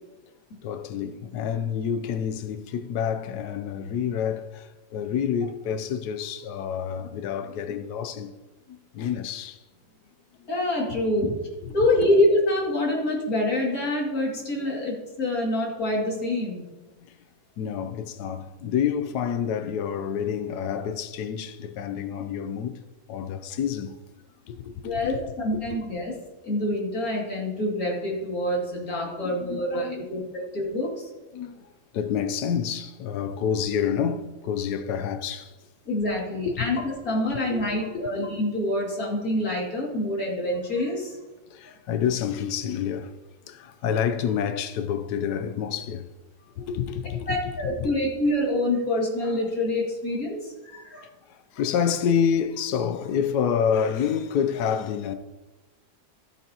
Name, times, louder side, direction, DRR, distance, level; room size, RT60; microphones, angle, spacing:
voice 1, 0.6-8.3 8.7-9.6 10.4-10.5 12.0-12.1 14.6-14.7 17.1-17.2 17.6-22.8 23.1-24.0 24.5-25.2 29.0-30.0 31.3-31.6 31.9-35.5 36.4-36.7 37.2-38.1 41.5-43.1 43.5-46.1 46.6-47.9 51.3-55.1, left 8 dB, 85° left, 1.2 m, -28 dB
voice 2, 10.5-11.3 11.7-16.6 24.8-26.1 26.4-31.1 35.9-41.2 47.3-51.1, left 1 dB, 60° left, 3.0 m, -26 dB
14.5 x 8.4 x 2.9 m
omnidirectional pair, 1.7 m